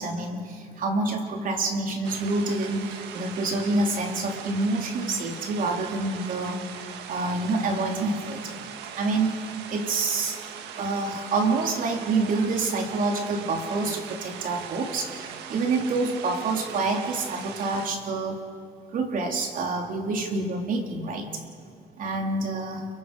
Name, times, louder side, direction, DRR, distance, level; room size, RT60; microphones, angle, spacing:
voice 1, 0.0-6.6 7.1-8.5 9.0-10.4 10.8-18.4 18.9-21.4 22.0-22.9, right 3 dB, 55° right, 2 dB, 3.2 m, -27 dB
sound 1, 2.0-17.9, right 8 dB, 85° right, 1.7 m, -40 dB
30.0 x 23.5 x 4.9 m, 2.3 s
cardioid pair, 110°, 17 cm